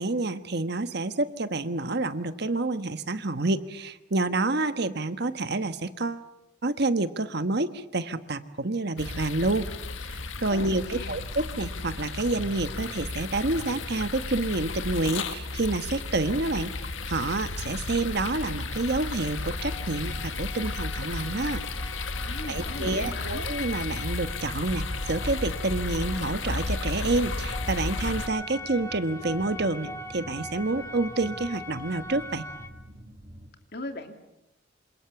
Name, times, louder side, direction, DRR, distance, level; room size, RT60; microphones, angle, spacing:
voice 1, 0.0-6.3 6.6-9.7 10.0-21.6 22.5-32.4, right 2 dB, 60° right, 10 dB, 1.4 m, -28 dB
sound 1, 9.0-28.3, left 3 dB, 85° left, 1.7 m, -33 dB
voice 2, 10.5-11.2 22.3-23.4 33.7-34.1, left 2 dB, 55° left, 5 dB, 3.0 m, -38 dB
sound 2, 18.1-32.7, left 2 dB, 15° left, 2.2 m, -42 dB
sound 3, 26.5-33.5, equal, 35° right, 3.1 m, -47 dB
27.0 x 27.0 x 7.1 m, 0.89 s
head